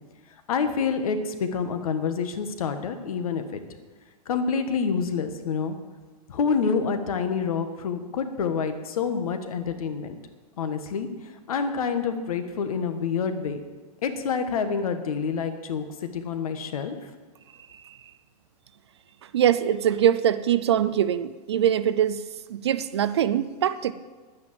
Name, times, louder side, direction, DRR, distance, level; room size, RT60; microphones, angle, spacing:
voice 1, 0.5-3.6 4.3-5.8 6.3-10.1 10.6-11.1 11.5-13.6 14.0-17.1, left 6 dB, 60° left, 8 dB, 1.4 m, -27 dB
voice 2, 19.3-22.2 22.5-23.9, right 10 dB, 40° right, 14 dB, 0.4 m, -23 dB
10.5 x 9.5 x 7.5 m, 1.3 s
supercardioid pair, 180°, 21 cm